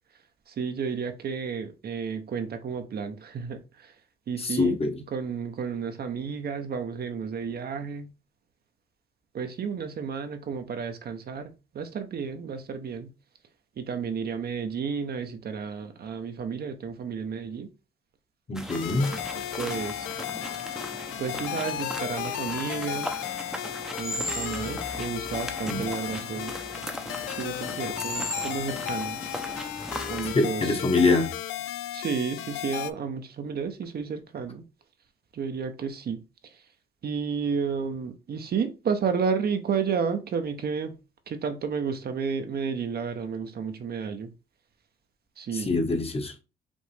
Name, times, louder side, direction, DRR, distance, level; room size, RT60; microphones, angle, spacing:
voice 1, 0.5-3.9 4.3-4.8 5.1-8.1 9.3-13.1 13.8-17.7 18.9-20.1 21.2-23.1 24.0-26.5 27.3-29.2 30.1-30.8 31.9-34.6 35.3-36.6 37.0-41.0 41.3-44.3 45.4-45.8, right 6 dB, 50° right, 0.8 m, -32 dB
voice 2, 4.4-5.0 18.5-19.1 25.7-25.9 30.3-31.3 45.5-46.3, left 3 dB, 30° left, 1.1 m, -24 dB
sound 1, 18.6-30.3, equal, ahead, 0.7 m, -37 dB
sound 2, 18.7-32.9, left 12 dB, 90° left, 0.4 m, -35 dB
5.2 x 2.5 x 3.3 m
cardioid pair, 90°, 20 cm